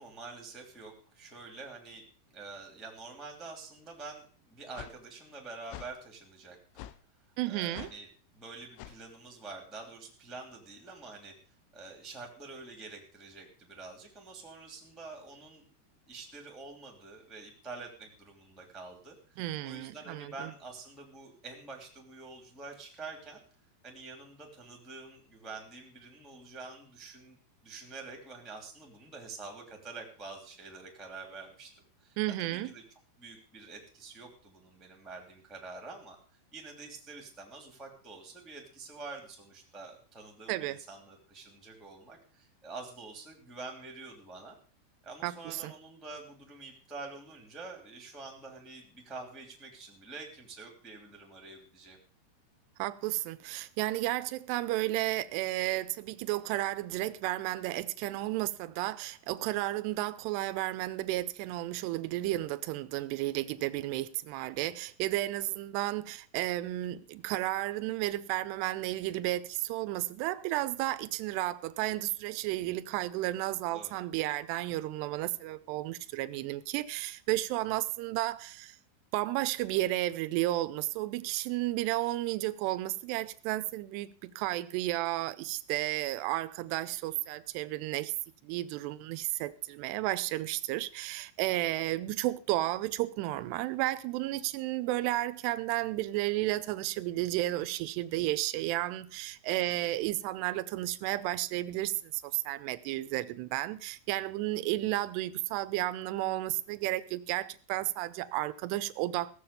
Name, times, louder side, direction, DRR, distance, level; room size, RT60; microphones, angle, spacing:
voice 1, 0.0-2.0 2.3-6.9 7.5-8.1 8.3-11.3 11.7-15.7 16.1-23.4 23.8-27.4 27.6-32.8 33.2-36.2 36.5-44.5 45.0-52.0 73.7-74.0 99.6-99.8, right 3 dB, ahead, 1.5 m, -47 dB
sound 1, 4.7-5.0 5.7-5.9 6.8-7.0 7.7-8.0 8.8-9.0, left 13 dB, 80° left, 2.5 m, -45 dB
voice 2, 7.4-7.9 19.4-20.5 32.2-32.7 40.5-40.8 45.2-45.7 52.8-78.8 79.1-88.1 88.4-109.3, right 16 dB, 80° right, 2.6 m, -32 dB
16.0 x 7.6 x 6.9 m
omnidirectional pair, 5.4 m